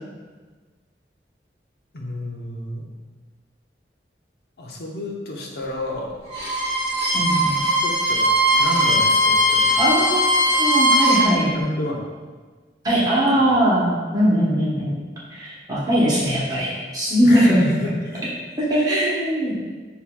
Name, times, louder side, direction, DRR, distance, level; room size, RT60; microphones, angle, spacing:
voice 1, 1.9-2.9 4.6-6.2 7.5-9.9 11.5-12.1 17.2-18.2, left 1 dB, 65° left, -1 dB, 0.7 m, -31 dB
Bowed string instrument, 6.3-11.3, equal, 20° left, 1.0 m, -19 dB
voice 2, 7.1-7.6 9.8-10.2 10.5-11.5 12.8-14.9 15.3-17.8 18.6-19.5, equal, 20° right, -8 dB, 1.0 m, -20 dB
6.6 x 2.8 x 2.3 m, 1.4 s
head